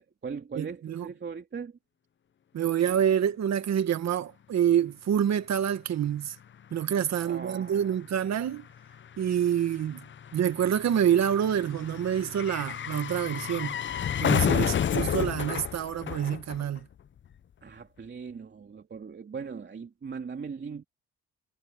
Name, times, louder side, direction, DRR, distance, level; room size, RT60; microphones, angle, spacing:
voice 1, 0.0-1.8 7.2-8.0 17.6-20.8, right 5 dB, 35° right, 2.7 m, -39 dB
voice 2, 0.6-1.1 2.5-6.3 6.7-8.6 9.2-10.0 10.3-13.7 14.2-16.8, right 9 dB, 60° right, 1.7 m, -27 dB
sound 1, 6.3-6.4 6.6-17.0 17.3-17.4, left 9 dB, 40° left, 0.7 m, -31 dB
cardioid pair, 90°, 30 cm